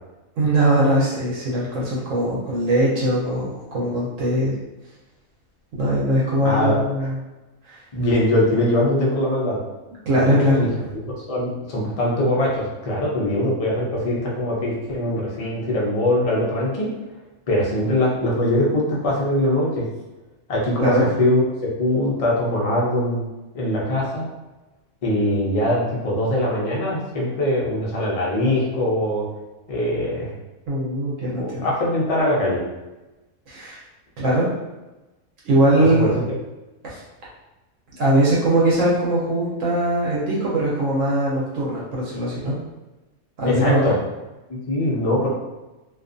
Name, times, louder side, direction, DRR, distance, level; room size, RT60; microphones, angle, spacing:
voice 1, 0.4-4.5 5.8-7.2 7.7-7.8 10.1-10.6 20.8-21.1 30.7-31.7 33.5-33.8 34.2-34.5 35.4-36.1 36.8-37.0 38.0-42.6 43.4-44.0, right 1 dB, 70° right, -6 dB, 1.0 m, -21 dB
voice 2, 6.4-6.8 7.9-9.6 10.1-16.9 17.5-19.9 20.5-21.4 21.8-23.2 23.5-24.3 25.0-29.3 29.7-30.3 31.4-32.6 34.2-34.3 35.8-36.2 43.5-43.9 44.5-45.3, left 1 dB, 50° left, -5 dB, 0.4 m, -22 dB
2.5 x 2.3 x 2.5 m, 1.1 s
omnidirectional pair, 1.4 m